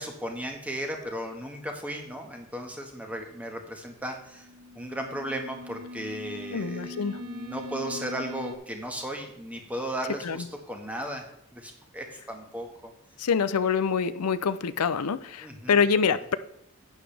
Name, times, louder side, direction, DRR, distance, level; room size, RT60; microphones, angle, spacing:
voice 1, 0.0-4.5 4.7-11.2 11.5-12.9 15.4-15.8, right 1 dB, 5° right, 2 dB, 1.5 m, -36 dB
sound 1, 4.2-8.6, left 2 dB, 70° right, 0.9 m, -41 dB
voice 2, 6.5-7.2 10.2-10.4 13.2-16.4, left 6 dB, 85° left, 13 dB, 0.5 m, -25 dB
11.0 x 9.0 x 3.4 m, 0.77 s
head